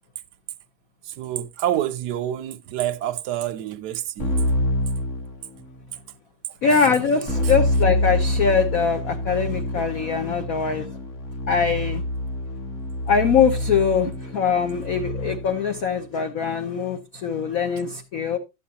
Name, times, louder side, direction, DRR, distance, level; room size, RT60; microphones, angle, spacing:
voice 1, 1.0-4.3, right 12 dB, 65° right, 1.1 m, -27 dB
Keyboard (musical), 4.2-5.9 7.3-15.7, left 1 dB, 35° left, 1.8 m, -26 dB
voice 2, 6.6-10.9 11.5-12.0 13.1-18.4, left 6 dB, 55° left, 1.0 m, -22 dB
12.0 x 8.6 x 2.8 m
omnidirectional pair, 2.2 m